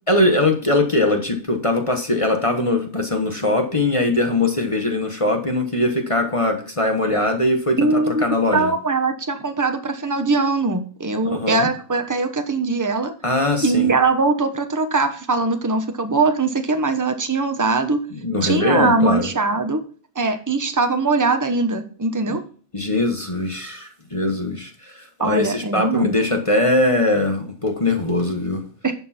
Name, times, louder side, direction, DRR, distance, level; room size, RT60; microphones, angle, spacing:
voice 1, 0.1-8.7 11.2-11.7 13.2-13.9 18.1-19.3 22.3-22.4 22.7-28.6, left 2 dB, 25° left, 4 dB, 1.3 m, -21 dB
voice 2, 7.8-8.2 8.5-13.1 13.6-18.0 18.4-19.8 20.1-22.4 25.2-26.1 28.8-28.9, right 3 dB, 15° right, 7 dB, 1.0 m, -21 dB
11.0 x 6.8 x 4.3 m, 0.42 s
omnidirectional pair, 1.4 m